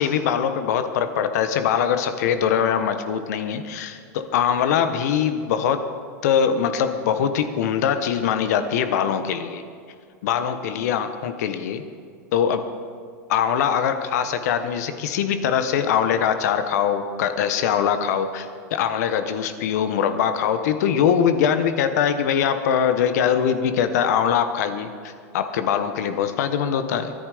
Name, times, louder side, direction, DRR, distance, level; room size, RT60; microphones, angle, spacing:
voice 1, 0.0-5.9 6.2-9.6 10.2-11.8 12.3-12.6 13.3-27.1, left 8 dB, 70° left, 9 dB, 1.3 m, -22 dB
23.0 x 10.5 x 5.1 m, 2.2 s
hypercardioid pair, 110°, 9 cm